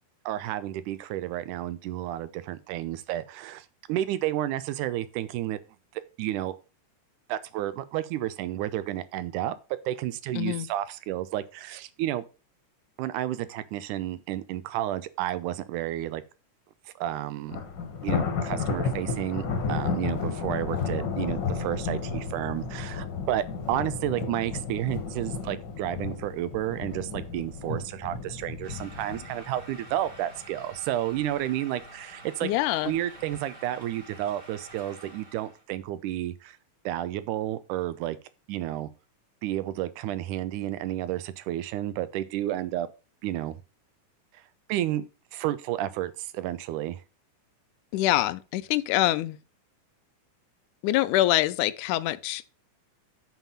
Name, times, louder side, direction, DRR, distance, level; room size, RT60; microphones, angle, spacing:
voice 1, 0.3-5.6 5.9-6.6 7.3-9.6 9.9-12.2 13.0-16.2 16.9-17.6 18.0-32.5 32.8-36.6 36.9-38.2 38.5-38.9 39.4-42.9 43.2-43.6 44.3-44.4 44.7-45.1 45.3-47.0, right 13 dB, 80° right, 2.2 m, -31 dB
voice 2, 10.4-10.7 32.4-32.9 47.9-49.4 50.8-52.4, left 15 dB, 85° left, 2.0 m, -25 dB
Thunder, 17.5-30.8 31.2-31.5 31.8-31.9 32.8-33.4, left 5 dB, 45° left, 1.5 m, -32 dB
sound 1, 28.6-35.6, right 2 dB, 30° right, 0.9 m, -48 dB
7.3 x 5.8 x 5.7 m
omnidirectional pair, 3.6 m